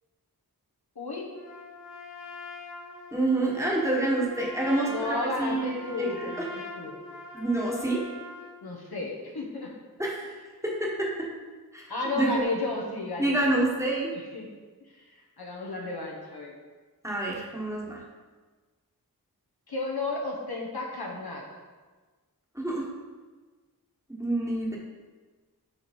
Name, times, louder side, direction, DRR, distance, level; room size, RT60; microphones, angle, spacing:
Trumpet, 1.3-8.6, left 2 dB, 30° left, 1.3 m, -43 dB
voice 1, 3.1-6.4 7.3-8.0 10.0-10.3 10.6-11.1 11.7-12.4 13.2-14.1 17.0-18.0 22.5-22.8 24.1-24.8, right 2 dB, 10° right, -4 dB, 1.3 m, -27 dB
voice 2, 4.6-7.0 8.6-9.7 11.9-13.6 14.1-14.5 15.4-16.6 19.7-21.4, left 2 dB, 75° left, -2 dB, 1.1 m, -33 dB
4.8 x 4.6 x 4.3 m, 1.3 s
wide cardioid pair, 40°, 38 cm